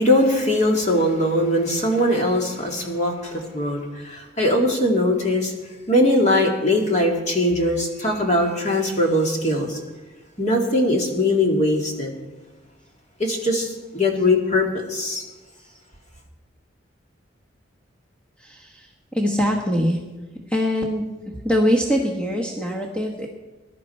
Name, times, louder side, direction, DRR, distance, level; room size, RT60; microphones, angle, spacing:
voice 1, 0.0-5.5 5.9-9.8 10.4-12.1 13.2-15.2, left 1 dB, 35° left, 1 dB, 2.3 m, -21 dB
voice 2, 19.1-20.0 20.5-21.0 21.4-23.3, equal, 5° left, 0 dB, 1.2 m, -22 dB
20.5 x 11.5 x 4.4 m, 1.2 s
head